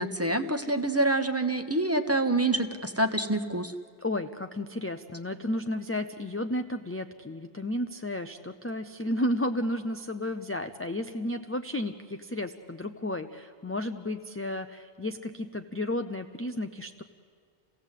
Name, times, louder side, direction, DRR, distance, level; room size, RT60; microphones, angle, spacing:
voice 1, 0.0-3.7, right 2 dB, 15° right, 7 dB, 1.0 m, -26 dB
voice 2, 4.0-17.0, left 1 dB, 20° left, 6 dB, 0.4 m, -32 dB
28.0 x 17.0 x 8.3 m, 2.2 s
omnidirectional pair, 1.0 m